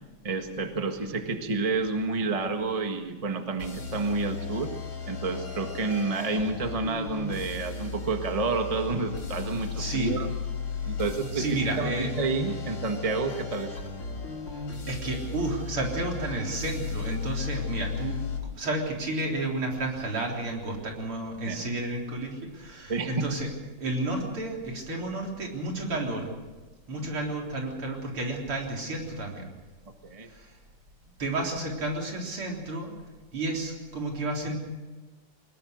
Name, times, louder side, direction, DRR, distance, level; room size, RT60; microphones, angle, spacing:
voice 1, 0.2-4.7 5.1-10.3 10.8-13.9 21.5-21.6 22.9-23.3 27.0-27.1 30.0-30.3, right 3 dB, 20° right, 5 dB, 1.5 m, -29 dB
sound 1, 3.6-18.4, left 5 dB, 80° left, 4.4 m, -35 dB
voice 2, 9.8-10.1 11.3-12.1 14.5-23.5 23.8-26.3 26.9-29.5 30.2-30.6 31.2-32.9 33.3-34.6, right 2 dB, 75° right, 0 dB, 4.6 m, -31 dB
22.0 x 20.5 x 6.5 m, 1.2 s
omnidirectional pair, 2.4 m